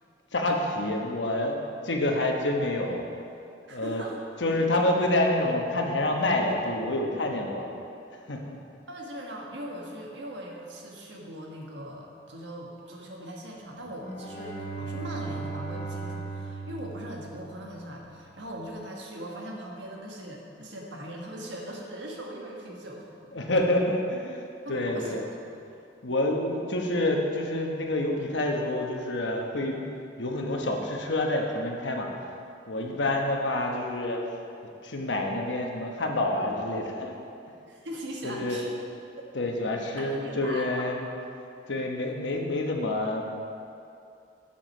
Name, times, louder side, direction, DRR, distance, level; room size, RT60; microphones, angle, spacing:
voice 1, 0.3-3.0 3.7-4.0 4.4-7.7 8.3-8.6 23.3-25.3 26.0-29.9 30.2-32.1 32.7-34.2 34.8-37.1 38.2-38.6 39.3-41.1 41.7-43.2, left 1 dB, 80° left, 1 dB, 1.1 m, -28 dB
voice 2, 3.7-4.3 8.9-23.3 24.6-25.5 32.7-33.1 37.7-38.7 39.2-39.3 40.0-40.9, right 1 dB, 80° right, -1 dB, 1.4 m, -40 dB
Bowed string instrument, 13.8-17.9, right 3 dB, 45° left, 1.9 m, -37 dB
7.7 x 7.1 x 5.5 m, 2.6 s
head